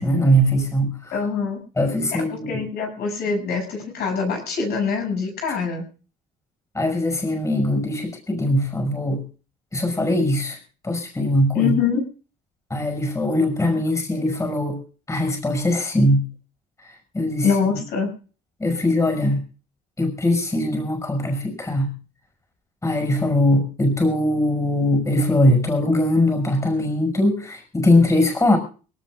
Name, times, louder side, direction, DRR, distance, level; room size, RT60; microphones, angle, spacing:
voice 1, 0.0-1.1 1.8-2.6 6.7-9.2 9.7-10.6 10.8-11.7 12.7-14.8 15.1-16.3 17.1-17.8 18.6-19.4 20.0-21.9 22.8-28.6, left 1 dB, 20° left, 5 dB, 5.9 m, -21 dB
voice 2, 1.1-1.6 2.3-5.9 11.5-12.0 17.4-18.1, left 5 dB, 75° left, 1 dB, 7.3 m, -24 dB
24.0 x 18.0 x 2.5 m, 0.38 s
cardioid pair, 110°, 17 cm